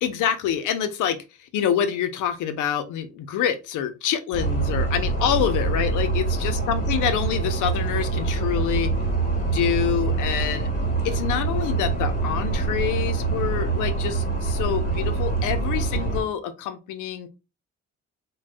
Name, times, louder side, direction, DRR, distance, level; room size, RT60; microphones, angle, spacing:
voice 1, 0.0-8.9 9.5-10.7 11.0-17.3, left 9 dB, 85° left, 10 dB, 0.6 m, -26 dB
sound 1, 4.3-16.2, right 3 dB, 40° left, 1.5 m, -25 dB
2.5 x 2.2 x 3.4 m, 0.29 s
cardioid pair, 90°, 30 cm